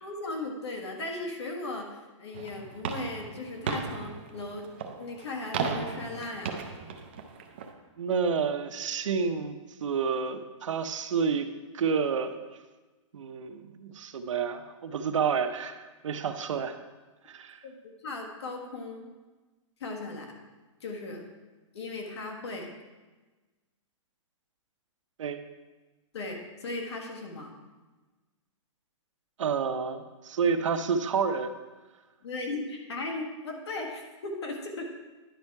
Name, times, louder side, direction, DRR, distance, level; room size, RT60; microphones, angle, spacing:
voice 1, 0.0-4.7 5.0-6.6 17.6-19.1 19.8-20.3 20.8-21.2 21.7-22.7 26.1-27.5 32.2-34.8, left 2 dB, 55° left, 2 dB, 1.6 m, -37 dB
sound 1, 2.3-7.7, right 5 dB, 20° right, 0.4 m, -36 dB
voice 2, 8.0-12.3 13.1-16.7 17.3-17.6 25.2-25.4 29.4-31.5, right 6 dB, 70° right, 8 dB, 0.8 m, -29 dB
10.5 x 5.4 x 4.6 m, 1.2 s
hypercardioid pair, 180°, 17 cm